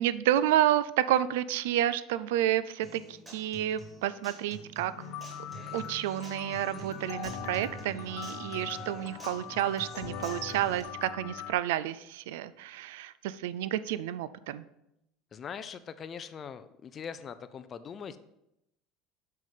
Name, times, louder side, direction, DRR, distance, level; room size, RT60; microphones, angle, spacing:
voice 1, 0.0-4.9 5.7-14.6, right 12 dB, 90° right, 15 dB, 0.4 m, -30 dB
Human voice / Acoustic guitar, 2.8-10.8, right 2 dB, 15° right, 2.1 m, -48 dB
sound 1, 5.0-11.5, left 7 dB, 65° left, 0.9 m, -41 dB
voice 2, 15.3-18.2, left 7 dB, 30° left, 11 dB, 0.4 m, -42 dB
6.3 x 5.8 x 5.2 m, 0.83 s
cardioid pair, 150°, 0 cm